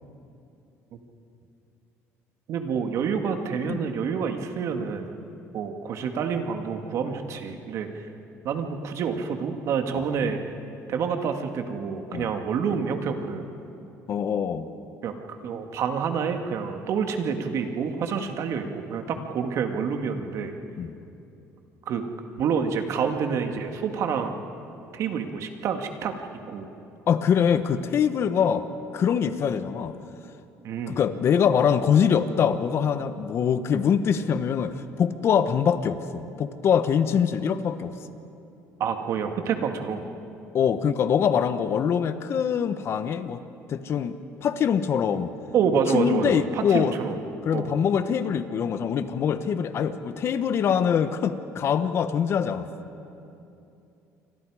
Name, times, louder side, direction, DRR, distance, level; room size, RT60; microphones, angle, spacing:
voice 1, 2.5-5.1 5.5-8.1 8.4-10.4 10.9-13.5 15.0-20.6 21.9-22.0 22.4-24.4 24.9-26.1 26.5-26.7 30.6-31.0 38.8-40.0 45.5-47.2 47.5-47.7, right 6 dB, 60° right, 5 dB, 2.0 m, -28 dB
voice 2, 14.1-14.7 19.2-19.3 20.8-20.9 27.1-28.7 28.9-30.0 30.9-37.9 40.5-43.4 43.7-44.2 44.4-45.3 45.9-47.0 47.4-52.7, left 7 dB, 50° left, 11 dB, 1.2 m, -24 dB
28.5 x 24.5 x 5.0 m, 2.8 s
cardioid pair, 115°, 6 cm